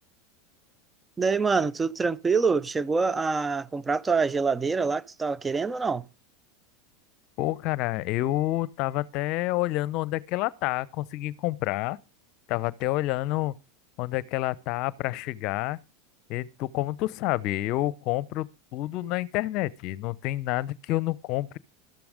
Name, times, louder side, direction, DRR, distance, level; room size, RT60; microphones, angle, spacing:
voice 1, 1.2-6.1, right 4 dB, 20° right, 0.5 m, -25 dB
voice 2, 7.4-12.0 12.5-13.5 14.0-15.8 16.3-21.6, left 16 dB, 55° left, 0.7 m, -28 dB
13.0 x 7.0 x 5.1 m
hypercardioid pair, 95°, 0 cm